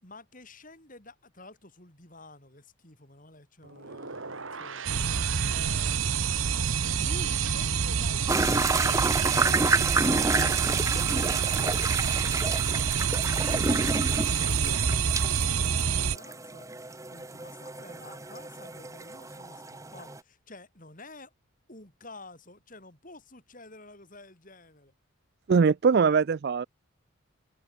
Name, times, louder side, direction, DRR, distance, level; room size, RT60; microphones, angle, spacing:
voice 1, 0.0-6.2 6.9-9.0 9.6-21.3 21.7-24.9, left 2 dB, 40° left, 5.0 m, -50 dB
sound 1, 3.6-13.7 14.0-14.5, right 9 dB, 70° right, 2.4 m, -42 dB
sound 2, 4.8-16.2, right 6 dB, 85° right, 1.1 m, -27 dB
sound 3, 8.3-20.2, right 3 dB, 15° right, 1.0 m, -30 dB
voice 2, 25.5-26.7, right 5 dB, 50° right, 0.3 m, -22 dB
head